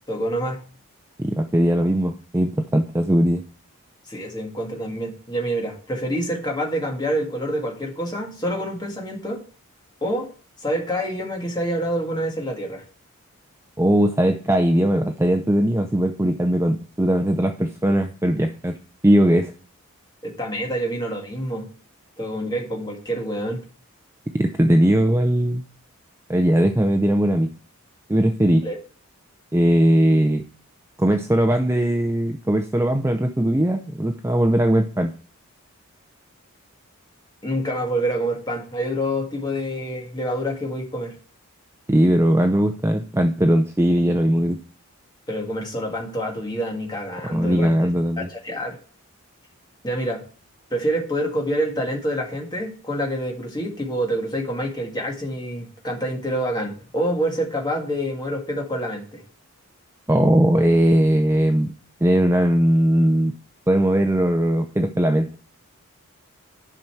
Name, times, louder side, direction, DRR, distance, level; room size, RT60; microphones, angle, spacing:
voice 1, 0.1-0.6 4.1-9.4 10.0-10.3 10.6-12.8 20.2-21.7 22.2-23.6 28.6-28.8 37.4-41.2 45.3-47.7 48.2-48.8 49.8-50.2 50.7-59.2, equal, 20° left, 0 dB, 1.8 m, -27 dB
voice 2, 1.2-3.4 13.8-18.8 19.0-19.5 24.3-25.6 26.3-27.5 28.1-28.7 29.5-30.4 31.0-35.1 41.9-44.6 47.3-48.3 60.1-61.7 62.0-63.3 63.7-65.3, right 1 dB, 10° right, 6 dB, 0.5 m, -19 dB
11.0 x 5.6 x 4.6 m, 0.41 s
head